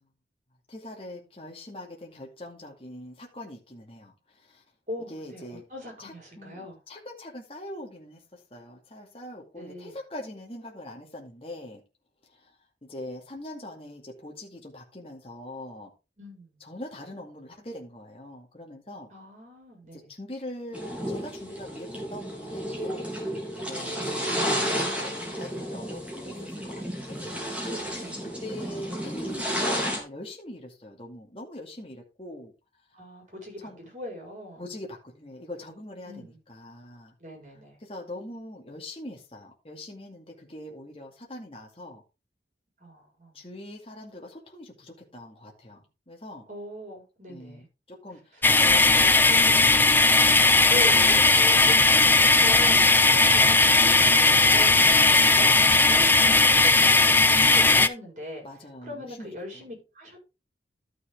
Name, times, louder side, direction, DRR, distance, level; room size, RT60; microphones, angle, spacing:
voice 1, 0.7-4.6 5.1-5.6 6.0-11.8 12.3-12.5 12.8-15.9 16.6-19.1 19.9-23.1 23.6-26.4 26.6-27.3 28.2-32.5 33.6-33.8 34.6-37.1 37.8-42.0 43.3-46.5 47.3-50.0 50.4-50.5 54.8-55.2 58.4-59.6, left 1 dB, 30° left, 2.3 m, -42 dB
voice 2, 4.9-6.8 9.6-9.9 16.2-16.6 19.1-20.1 32.9-34.7 36.1-36.4 37.2-37.8 42.8-43.4 46.5-47.7 48.3-49.7 50.7-55.5 55.9-58.4 58.8-60.2, left 1 dB, 40° right, 5.2 m, -40 dB
sound 1, 20.7-30.0, equal, 5° right, 3.1 m, -32 dB
sound 2, 48.4-57.9, left 3 dB, 10° left, 0.4 m, -18 dB
12.5 x 6.4 x 3.7 m
head